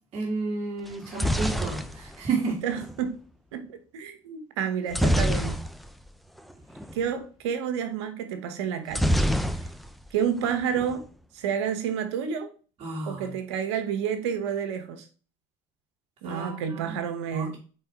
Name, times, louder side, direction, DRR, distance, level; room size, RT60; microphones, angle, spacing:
voice 1, 0.1-2.5 12.8-13.3 16.2-16.9 17.3-17.6, right 4 dB, 40° right, 2.2 m, -31 dB
sound 1, 0.9-3.0 4.9-6.1 6.4-6.5 6.8-7.0 8.9-10.1 10.4-11.0, equal, ahead, 0.6 m, -26 dB
voice 2, 2.6-3.1 3.5-5.6 6.9-9.1 10.1-11.0 11.3-12.5 13.0-15.1 16.2-17.6, right 7 dB, 90° right, 1.2 m, -30 dB
4.7 x 4.5 x 4.6 m
supercardioid pair, 95°, 14 cm